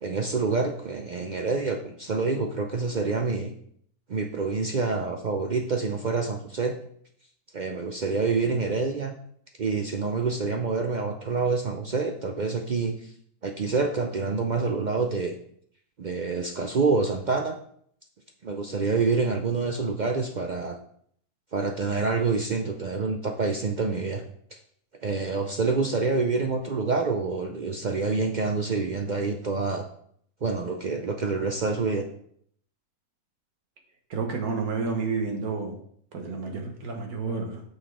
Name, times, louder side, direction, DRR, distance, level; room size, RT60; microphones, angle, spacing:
voice 1, 0.0-3.5 4.1-6.7 7.5-9.1 9.6-13.1 13.4-15.3 16.0-17.6 18.4-20.8 21.5-24.2 24.5-24.6 25.0-29.9 30.4-32.1, right 4 dB, 65° right, 4 dB, 0.4 m, -27 dB
voice 2, 34.1-35.8 36.1-37.6, right 4 dB, 85° right, 2 dB, 1.8 m, -30 dB
6.6 x 5.8 x 4.8 m, 0.65 s
omnidirectional pair, 1.6 m